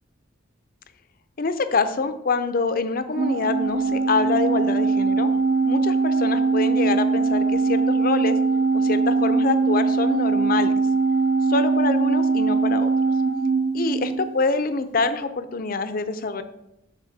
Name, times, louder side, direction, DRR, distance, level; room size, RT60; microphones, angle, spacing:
voice 1, 1.4-5.3 5.6-8.4 8.7-10.7 11.5-12.9 13.7-16.4, left 4 dB, 45° left, 10 dB, 0.5 m, -25 dB
Organ, 3.2-14.4, right 4 dB, 55° right, 0.5 m, -21 dB
12.0 x 4.3 x 2.7 m, 0.84 s
head